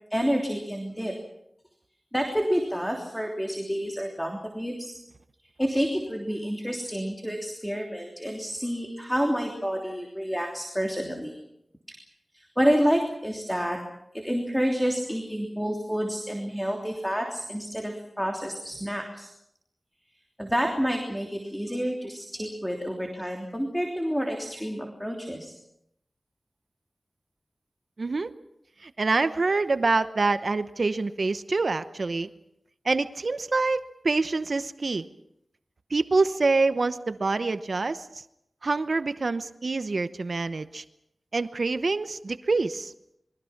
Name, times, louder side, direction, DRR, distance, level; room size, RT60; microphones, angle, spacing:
voice 1, 0.1-1.1 2.1-4.9 5.6-11.3 12.3-13.8 14.2-19.3 20.4-25.5, equal, 5° left, 2 dB, 3.2 m, -29 dB
voice 2, 28.0-28.3 28.8-32.3 32.8-35.0 35.9-38.2 38.6-40.8 41.3-42.9, right 3 dB, 60° right, 11 dB, 0.9 m, -26 dB
28.0 x 22.5 x 5.9 m, 0.77 s
wide cardioid pair, 90°, 0 cm